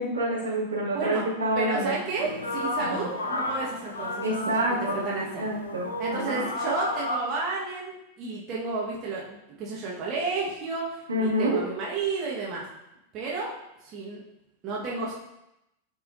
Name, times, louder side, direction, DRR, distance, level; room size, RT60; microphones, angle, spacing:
voice 1, 0.0-2.0 2.8-3.0 4.2-6.5 11.1-11.6, right 1 dB, 80° right, -8 dB, 2.6 m, -28 dB
voice 2, 0.9-1.3 1.5-4.5 4.9-5.5 6.0-12.6 13.1-13.5 13.8-14.2 14.6-15.1, right 4 dB, 35° right, -5 dB, 1.6 m, -32 dB
sound 1, 2.2-7.2, left 2 dB, 75° left, 0.9 m, -32 dB
10.5 x 4.7 x 2.8 m, 0.87 s
figure-of-eight pair, 90°, 0 cm